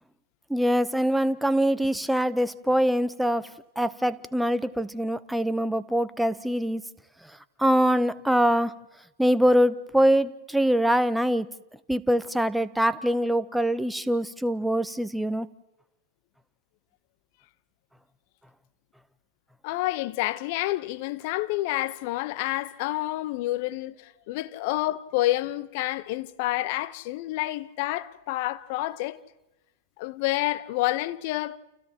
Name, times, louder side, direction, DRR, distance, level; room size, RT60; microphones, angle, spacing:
voice 1, 0.5-3.5 3.8-6.8 7.6-8.7 9.2-11.5 11.9-15.5, equal, ahead, 0.8 m, -23 dB
voice 2, 19.6-29.2 30.0-31.6, left 17 dB, 50° left, 0.9 m, -29 dB
29.5 x 29.5 x 3.0 m
hypercardioid pair, 100°, 0 cm